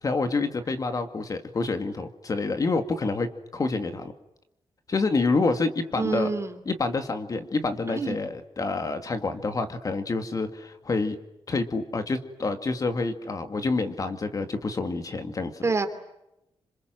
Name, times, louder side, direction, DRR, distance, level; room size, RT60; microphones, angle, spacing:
voice 1, 0.0-4.1 4.9-6.3 6.7-11.2 11.5-15.7, left 3 dB, 35° left, 8 dB, 2.3 m, -28 dB
voice 2, 6.0-6.6 7.9-8.2 15.6-15.9, right 4 dB, 25° right, 8 dB, 2.9 m, -27 dB
28.0 x 27.0 x 7.8 m, 0.86 s
wide cardioid pair, 180°, 10 cm